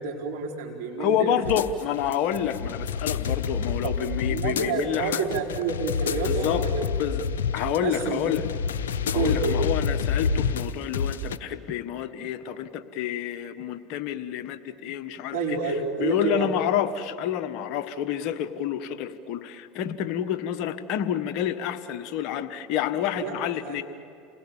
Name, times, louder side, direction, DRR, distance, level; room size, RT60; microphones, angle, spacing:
voice 1, 0.0-1.3 3.8-3.9 4.3-7.2 7.6-8.3 9.1-9.6 15.3-16.5 23.2-23.3 23.6-23.8, right 4 dB, 75° right, 0 dB, 4.7 m, -29 dB
voice 2, 1.0-5.2 6.2-6.6 7.0-7.3 7.5-8.5 9.1-15.4 15.6-15.7 16.0-23.8, left 10 dB, 60° left, 10 dB, 1.3 m, -28 dB
sound 1, 1.4-11.4, left 6 dB, 85° left, 0.9 m, -28 dB
29.0 x 20.5 x 7.3 m, 2.6 s
hypercardioid pair, 85°, 0 cm